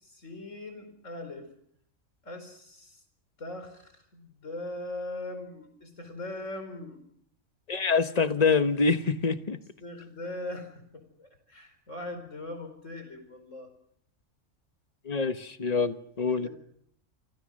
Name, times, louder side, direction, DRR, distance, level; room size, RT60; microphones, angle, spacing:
voice 1, 0.0-1.5 2.2-3.0 3.4-7.0 9.8-13.7 16.3-16.5, left 2 dB, 80° left, 4.9 m, -40 dB
voice 2, 7.7-9.6 15.1-16.5, left 4 dB, 35° left, 1.2 m, -25 dB
29.5 x 25.0 x 6.4 m
omnidirectional pair, 1.3 m